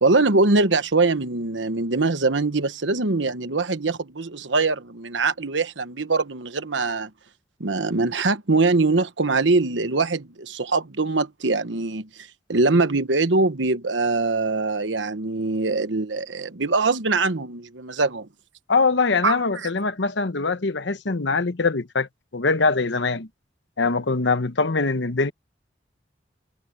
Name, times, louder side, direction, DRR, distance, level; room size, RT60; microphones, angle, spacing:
voice 1, 0.0-7.1 7.6-18.3 19.2-19.7, right 3 dB, 90° right, 1.2 m, -23 dB
voice 2, 18.7-23.3 23.8-25.3, left 4 dB, 80° left, 1.0 m, -23 dB
head